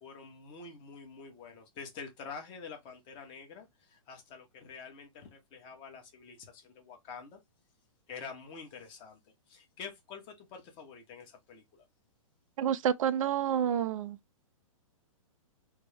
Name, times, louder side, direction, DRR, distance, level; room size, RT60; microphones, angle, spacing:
voice 1, 0.0-7.4 8.1-11.9, left 5 dB, 25° left, 1.0 m, -47 dB
voice 2, 12.6-14.2, right 9 dB, 70° right, 0.4 m, -29 dB
3.4 x 2.1 x 3.3 m
hypercardioid pair, 150°, 18 cm